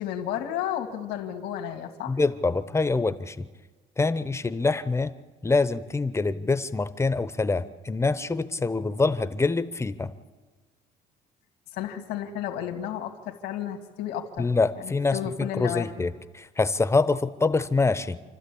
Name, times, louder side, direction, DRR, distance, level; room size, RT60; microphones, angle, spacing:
voice 1, 0.0-2.2 11.7-16.1, left 10 dB, 90° left, 3 dB, 1.9 m, -33 dB
voice 2, 2.1-3.5 4.0-5.1 5.4-10.1 14.4-18.2, left 3 dB, 15° left, 13 dB, 0.8 m, -25 dB
28.0 x 12.5 x 8.6 m, 1.3 s
cardioid pair, 110°, 17 cm